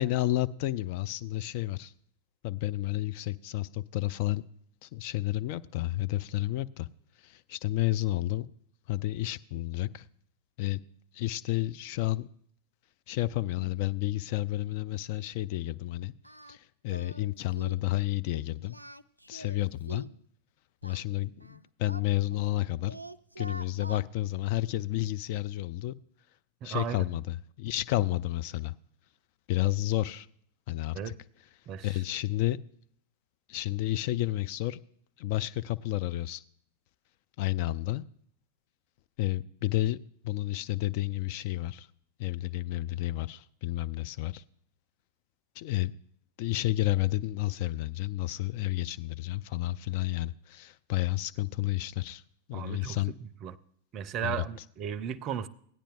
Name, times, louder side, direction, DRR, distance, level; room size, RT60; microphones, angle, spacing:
voice 1, 0.0-1.9 2.4-4.4 4.8-6.9 7.2-8.5 8.9-10.1 10.6-10.8 11.1-12.3 13.1-16.1 16.5-18.8 19.3-20.0 20.8-23.0 23.4-25.9 26.6-28.7 29.5-30.3 30.7-31.1 31.8-32.6 33.5-34.8 35.2-36.4 37.4-38.0 39.2-40.0 40.2-41.9 42.2-44.4 45.6-45.9 46.4-52.2 52.5-53.1 54.2-54.4, left 16 dB, 45° left, 0.3 m, -31 dB
Singing, 16.2-16.6 16.9-17.3 17.6-17.9 18.6-20.2 20.8-22.6 22.9-24.1, right 1 dB, 90° right, 0.3 m, -45 dB
voice 2, 26.6-27.1 30.9-31.2 31.7-31.9 52.5-53.0 53.4-53.6 53.9-55.5, right 8 dB, 35° right, 0.5 m, -35 dB
16.5 x 10.0 x 2.5 m
figure-of-eight pair, 90°, 0 cm